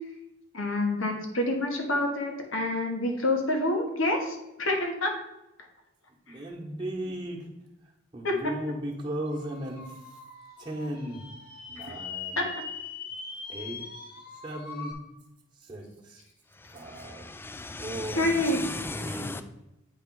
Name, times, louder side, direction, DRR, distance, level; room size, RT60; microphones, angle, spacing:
voice 1, 0.5-5.1 8.2-8.3 12.4-12.5 18.1-18.6, left 1 dB, 80° left, 2 dB, 1.3 m, -27 dB
voice 2, 6.3-7.5 8.1-10.0 10.6-11.3 11.7-12.5 13.5-13.8 14.4-14.9 15.6-16.2 16.7-17.2 17.8-18.3 18.9-19.4, right 1 dB, 25° right, -3 dB, 1.1 m, -36 dB
sound 1, 9.3-14.9, left 5 dB, 50° left, 1.0 m, -42 dB
voice 3, 16.5-19.4, left 2 dB, 10° left, 10 dB, 0.3 m, -37 dB
8.6 x 3.3 x 4.6 m, 0.91 s
head